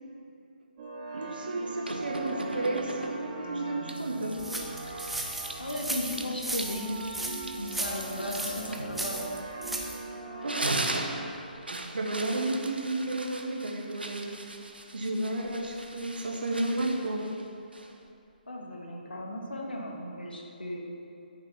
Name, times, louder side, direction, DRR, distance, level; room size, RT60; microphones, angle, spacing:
sound 1, 0.8-11.3, right 2 dB, 40° right, 2.5 m, -40 dB
voice 1, 1.1-4.4 10.4-10.7 11.5-14.3 14.9-17.3, right 2 dB, 70° right, 1 dB, 1.6 m, -32 dB
sound 2, 1.8-3.4 3.9-9.9 10.3-18.1, right 2 dB, 85° right, 1.0 m, -39 dB
sound 3, 4.4-10.0, right 2 dB, 5° right, 0.8 m, -36 dB
voice 2, 5.6-7.2 7.6-9.2 18.5-20.9, left 1 dB, 80° left, -2 dB, 2.4 m, -36 dB
13.5 x 7.2 x 5.3 m, 2.6 s
figure-of-eight pair, 140°, 5 cm